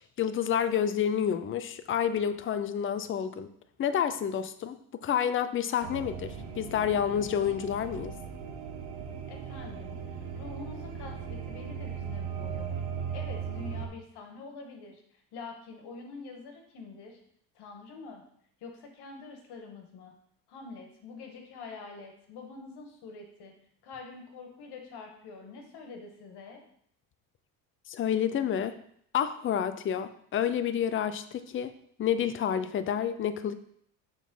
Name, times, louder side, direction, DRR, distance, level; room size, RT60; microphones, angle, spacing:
voice 1, 0.2-3.5 3.8-4.8 5.0-8.1 27.9-28.7 29.1-31.7 32.0-33.5, left 9 dB, 30° left, 11 dB, 0.5 m, -29 dB
sound 1, 5.8-13.9, right 7 dB, 80° right, 1.6 m, -38 dB
voice 2, 9.3-12.8 13.1-15.0 15.3-17.2 17.5-18.2 18.6-20.1 20.5-23.5 23.8-26.6, left 4 dB, 60° left, 3 dB, 1.8 m, -45 dB
7.3 x 4.0 x 5.4 m, 0.67 s
cardioid pair, 120°, 45 cm